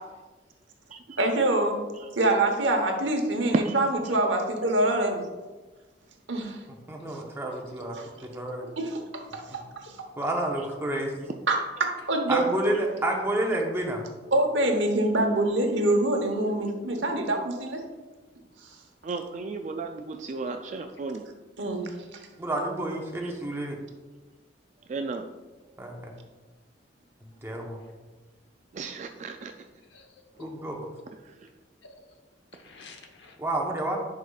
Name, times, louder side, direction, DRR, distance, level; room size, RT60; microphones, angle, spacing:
voice 1, 1.2-1.8 2.1-5.2 6.3-6.6 8.0-8.1 8.8-9.0 9.3-9.6 11.5-12.4 14.3-17.8 21.6-22.2, right 1 dB, 75° right, 4 dB, 1.0 m, -25 dB
voice 2, 3.4-3.7 19.0-21.2 24.9-25.2 28.7-29.5, right 3 dB, 40° right, 5 dB, 0.3 m, -33 dB
voice 3, 6.9-8.0 8.3-8.6 10.2-11.3 12.3-14.0 22.4-23.8 25.8-26.1 27.4-27.8 30.4-30.8 33.4-34.0, right 1 dB, 15° right, 0 dB, 0.9 m, -29 dB
voice 4, 7.4-7.9 20.5-20.6 21.2-21.3 27.8-27.9 29.8-30.5 31.8-32.2 32.5-33.4, left 3 dB, 70° left, 3 dB, 1.0 m, -50 dB
10.5 x 4.9 x 2.3 m, 1.3 s
head